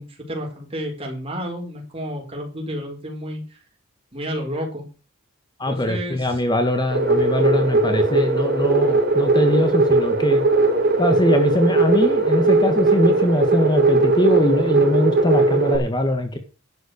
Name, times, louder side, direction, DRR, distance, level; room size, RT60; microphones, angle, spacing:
voice 1, 0.0-3.6 4.1-4.9 5.6-6.4, equal, 30° right, 1 dB, 4.8 m, -31 dB
voice 2, 5.6-10.4 11.0-16.4, left 1 dB, 20° left, 7 dB, 1.6 m, -22 dB
sound 1, 6.9-15.8, right 2 dB, 50° right, 3.6 m, -18 dB
11.5 x 8.0 x 6.5 m, 0.33 s
head